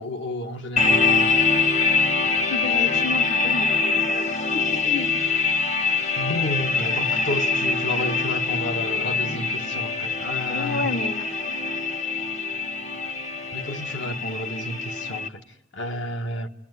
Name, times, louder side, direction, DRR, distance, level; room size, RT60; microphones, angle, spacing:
voice 1, 0.0-1.4 6.2-10.9 13.5-15.4 15.7-16.5, left 1 dB, 80° left, 1.7 m, -31 dB
sound 1, 0.8-15.3, left 4 dB, 35° left, 1.0 m, -24 dB
voice 2, 2.5-5.1 10.5-11.4, left 3 dB, 60° left, 0.9 m, -31 dB
30.0 x 20.0 x 9.7 m
head